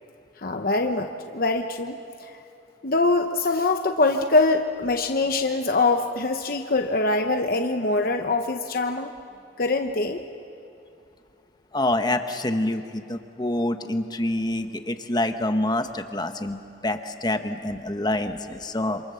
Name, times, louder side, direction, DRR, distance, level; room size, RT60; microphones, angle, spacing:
voice 1, 0.4-2.3 2.8-9.1 9.6-10.2, left 3 dB, 50° left, 5 dB, 0.9 m, -23 dB
voice 2, 11.7-16.6 16.8-19.0, left 1 dB, 20° left, 7 dB, 1.1 m, -26 dB
27.5 x 26.5 x 7.0 m, 2.6 s
head